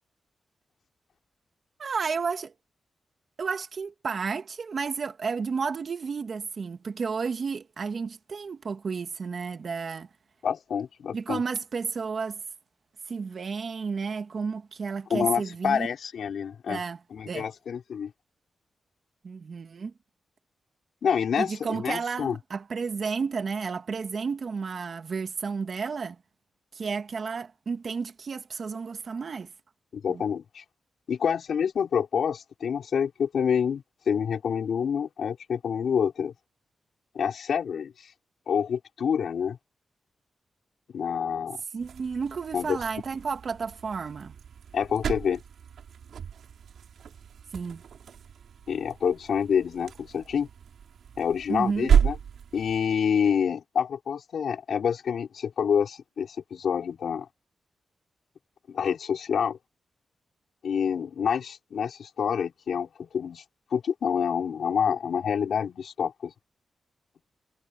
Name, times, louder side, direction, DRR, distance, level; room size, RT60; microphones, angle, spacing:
voice 1, 1.8-2.5 3.4-10.1 11.1-12.4 13.1-15.9 16.7-17.0 17.3-17.5 19.2-19.9 21.4-26.2 26.7-29.5 30.1-30.2 41.7-44.4 47.5-47.8 51.5-51.9, right 5 dB, 55° right, 1.9 m, -32 dB
voice 2, 10.4-11.4 15.1-16.8 17.1-18.1 21.0-22.4 29.9-30.6 31.1-36.3 37.1-38.1 38.5-39.6 40.9-41.6 42.5-42.8 44.7-45.4 48.7-50.5 51.2-52.2 52.5-57.3 58.7-59.6 60.6-63.4 63.7-66.3, left 7 dB, 80° left, 5.6 m, -27 dB
sound 1, 41.8-52.9, right 7 dB, 85° right, 7.0 m, -32 dB
wide cardioid pair, 105°, 0 cm